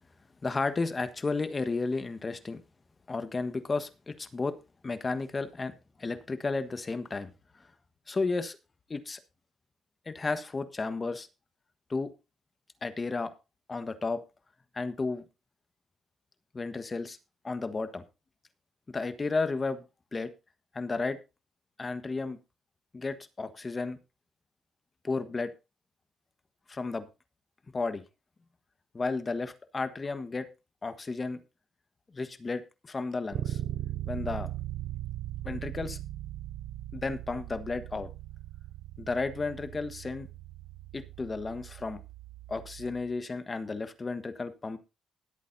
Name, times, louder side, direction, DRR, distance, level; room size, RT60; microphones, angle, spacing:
voice 1, 0.4-2.6 3.1-4.6 4.8-5.7 6.0-7.3 8.1-8.6 8.9-9.2 10.1-11.3 11.9-12.1 12.8-13.3 13.7-14.2 14.7-15.2 16.5-17.2 17.4-18.0 18.9-19.8 20.1-20.3 20.7-21.2 21.8-22.4 22.9-24.0 25.0-25.5 26.7-27.1 27.7-28.0 28.9-30.5 30.8-31.4 32.1-33.6 34.1-34.5 35.4-36.0 36.9-38.1 39.0-40.3 40.9-42.0 42.5-44.8, left 3 dB, 30° left, 11 dB, 1.4 m, -33 dB
Bass guitar, 33.3-43.1, right 13 dB, 70° right, 0.5 m, -39 dB
20.0 x 8.5 x 2.7 m, 0.28 s
cardioid pair, 90°, 0 cm